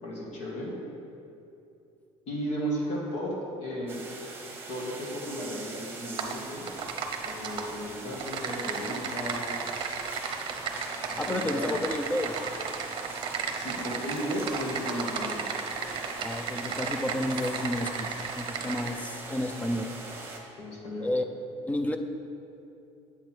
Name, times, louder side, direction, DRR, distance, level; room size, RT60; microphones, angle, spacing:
voice 1, 0.0-0.7 2.3-4.0 4.7-6.7 7.2-9.6 11.1-11.9 13.5-15.5 20.6-21.1, equal, 60° left, -2 dB, 2.1 m, -35 dB
sound 1, 3.9-20.4, right 3 dB, 20° right, 1.2 m, -42 dB
Typing, 6.2-6.4 6.7-7.6 8.1-18.9, right 5 dB, 40° right, 0.8 m, -34 dB
voice 2, 11.2-12.4 16.2-18.1 18.4-19.9 21.0-21.2 21.7-22.0, left 1 dB, 10° left, 7 dB, 0.5 m, -31 dB
8.2 x 8.1 x 4.5 m, 2.7 s
cardioid pair, 140°, 12 cm